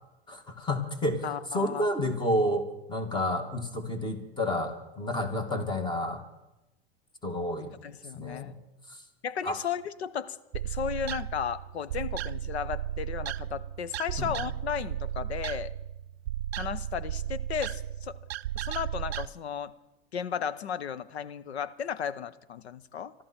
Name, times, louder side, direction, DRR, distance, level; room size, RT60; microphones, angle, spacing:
voice 1, 0.3-1.2 1.5-6.2 7.2-7.7 8.1-8.5 9.4-9.6 14.2-14.3, left 1 dB, 15° left, 7 dB, 2.1 m, -30 dB
voice 2, 1.2-1.9 7.8-8.5 9.2-15.7 16.5-18.2 18.6-19.7 20.1-23.1, left 8 dB, 90° left, 15 dB, 0.9 m, -35 dB
sound 1, 10.5-19.3, right 11 dB, 80° right, 0.5 m, -35 dB
25.0 x 13.0 x 4.4 m, 0.97 s
hypercardioid pair, 130°, 31 cm